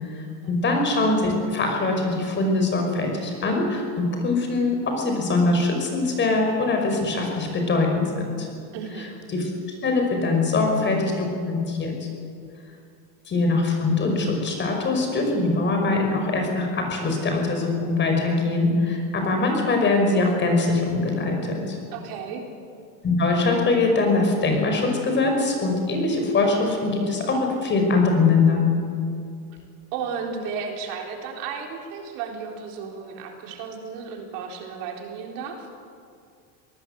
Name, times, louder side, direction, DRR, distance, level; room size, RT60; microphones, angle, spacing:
voice 1, 0.0-8.5 9.3-9.5 9.8-11.9 13.3-21.8 23.0-28.6, left 3 dB, 25° left, 3 dB, 5.6 m, -22 dB
voice 2, 8.7-9.1 21.9-22.4 29.9-35.7, right 6 dB, 60° right, 2 dB, 4.1 m, -34 dB
23.5 x 19.0 x 8.2 m, 2.3 s
supercardioid pair, 145°, 43 cm